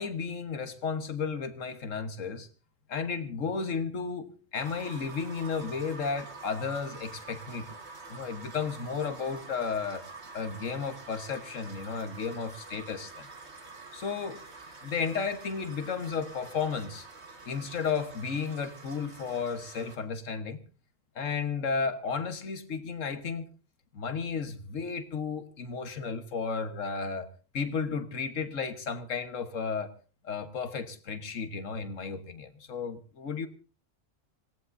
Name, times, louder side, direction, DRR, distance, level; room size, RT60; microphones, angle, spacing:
voice 1, 0.0-2.5 2.9-7.8 8.1-10.1 10.3-13.3 13.9-14.4 14.8-17.1 17.4-20.6 21.1-23.5 23.9-27.3 27.5-29.9 30.2-33.5, left 5 dB, 75° left, 10 dB, 1.6 m, -33 dB
sound 1, 4.5-20.0, right 4 dB, 55° right, 2.2 m, -47 dB
26.0 x 17.5 x 2.6 m, 0.35 s
omnidirectional pair, 1.3 m